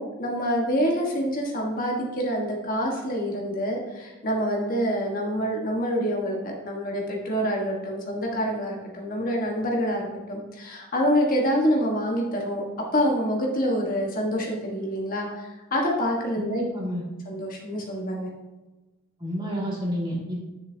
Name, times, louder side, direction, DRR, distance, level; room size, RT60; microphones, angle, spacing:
voice 1, 0.0-12.6 12.9-16.6 17.2-18.3, equal, 40° left, -1 dB, 1.4 m, -26 dB
voice 2, 16.4-17.0 19.2-20.4, equal, 20° right, -4 dB, 2.1 m, -29 dB
10.5 x 6.8 x 2.7 m, 1.1 s
head